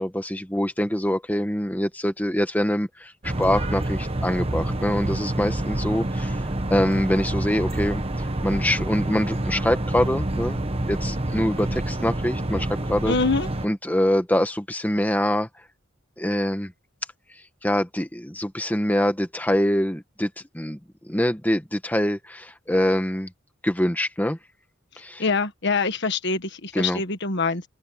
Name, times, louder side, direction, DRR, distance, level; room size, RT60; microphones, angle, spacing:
voice 1, 0.0-13.1 13.6-15.5 16.2-16.7 17.6-20.8 21.0-23.3 23.6-24.4 25.0-25.2 26.7-27.0, left 1 dB, 10° left, 1.4 m, -24 dB
sound 1, 3.2-13.7, right 1 dB, 30° right, 1.2 m, -27 dB
voice 2, 13.1-13.5 25.2-27.6, left 4 dB, 55° left, 1.6 m, -24 dB
open air
head